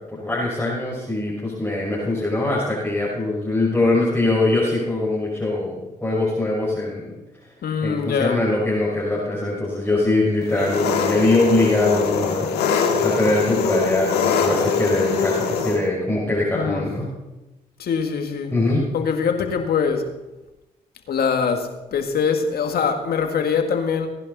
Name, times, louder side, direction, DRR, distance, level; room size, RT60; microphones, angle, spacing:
voice 1, 0.1-7.0 7.8-12.5 13.0-17.1 18.5-18.9, left 2 dB, 10° left, -7 dB, 5.6 m, -22 dB
voice 2, 7.6-8.4 16.5-16.9 17.8-18.5 18.9-20.1 21.1-24.1, left 6 dB, 65° left, 5 dB, 2.0 m, -23 dB
Engine, 10.5-15.8, left 5 dB, 85° left, 1.8 m, -22 dB
18.5 x 11.0 x 4.2 m, 1.0 s
supercardioid pair, 60°, 17 cm